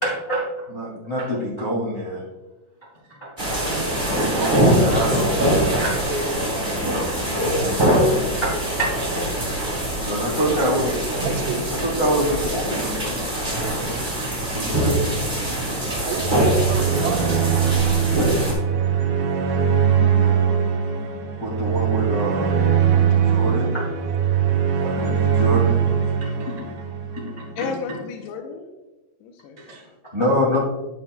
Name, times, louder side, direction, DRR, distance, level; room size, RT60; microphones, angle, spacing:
voice 1, 0.0-2.2 3.1-6.0 7.1-9.3 10.0-11.0 11.8-13.2 13.9-14.0 14.5-15.0 20.2-20.4 21.4-22.5 23.2-23.9 24.8-25.8 26.2-26.6 27.1-27.7 29.6-30.6, equal, 50° left, -7 dB, 0.6 m, -27 dB
sound 1, 3.4-18.5, equal, 10° right, 1.5 m, -23 dB
voice 2, 10.0-10.4 24.7-24.9 27.6-28.7 29.2-29.6, left 6 dB, 80° left, 3 dB, 2.5 m, -33 dB
voice 3, 11.2-11.6 16.0-17.8, right 7 dB, 90° right, 1 dB, 3.5 m, -30 dB
sound 2, 16.1-27.5, right 7 dB, 65° right, 3.7 m, -21 dB
11.5 x 7.7 x 2.3 m, 1.1 s
omnidirectional pair, 5.6 m